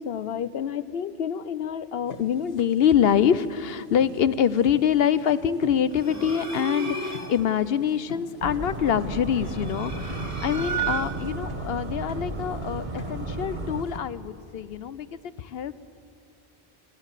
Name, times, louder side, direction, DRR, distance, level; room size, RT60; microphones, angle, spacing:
voice 1, 0.0-15.7, left 8 dB, 75° left, 15 dB, 0.9 m, -25 dB
Musical jug, 2.1-14.0, left 3 dB, 55° left, 1.9 m, -46 dB
sound 1, 5.9-7.5 9.4-11.4, right 5 dB, 15° right, 1.8 m, -32 dB
sound 2, 8.4-13.8, right 2 dB, 50° right, 1.5 m, -34 dB
29.0 x 14.5 x 7.4 m, 2.4 s
omnidirectional pair, 1.0 m